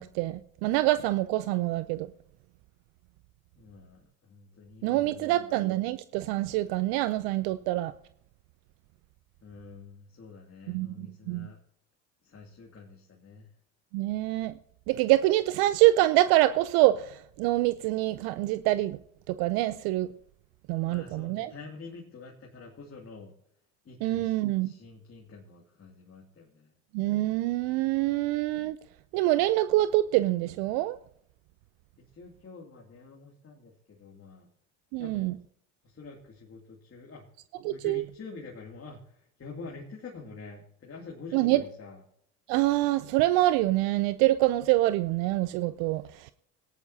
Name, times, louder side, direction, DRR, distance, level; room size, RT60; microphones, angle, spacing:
voice 1, 0.0-2.1 4.8-7.9 10.7-11.5 13.9-14.5 14.9-19.0 19.3-20.1 20.7-21.5 24.0-24.7 26.9-28.8 29.1-31.0 34.9-35.4 37.6-38.0 41.3-41.6 42.5-46.3, right 16 dB, 70° right, 0.6 m, -25 dB
voice 2, 3.6-5.5 9.4-11.6 12.2-13.5 20.7-23.3 23.8-26.7 28.0-28.2 32.1-34.5 35.0-35.4 35.8-37.2 37.7-42.0, left 4 dB, 35° left, 2.6 m, -47 dB
18.0 x 10.5 x 2.8 m
hypercardioid pair, 75°, 38 cm